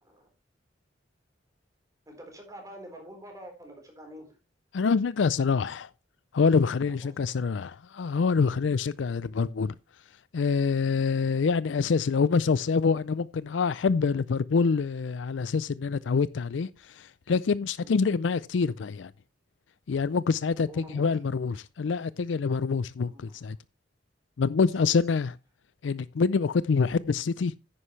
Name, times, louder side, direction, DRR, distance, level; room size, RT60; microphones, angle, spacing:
voice 1, 2.1-4.4 6.8-7.3 17.8-18.0 20.6-21.2 23.1-23.4, equal, 20° right, 4.1 m, -47 dB
voice 2, 4.7-5.9 6.3-9.7 10.3-19.1 19.9-23.6 24.4-25.4 25.8-27.5, left 5 dB, 75° left, 0.4 m, -26 dB
10.0 x 9.8 x 3.2 m
head